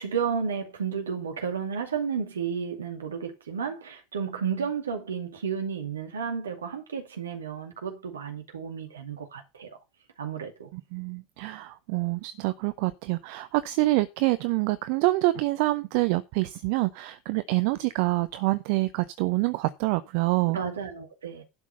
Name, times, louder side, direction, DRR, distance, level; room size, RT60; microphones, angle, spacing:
voice 1, 0.0-9.8 10.2-10.7 20.5-21.4, right 6 dB, 75° right, 2.3 m, -32 dB
voice 2, 10.7-20.6, right 19 dB, 55° right, 0.7 m, -26 dB
11.5 x 6.0 x 5.5 m
figure-of-eight pair, 75°, 0 cm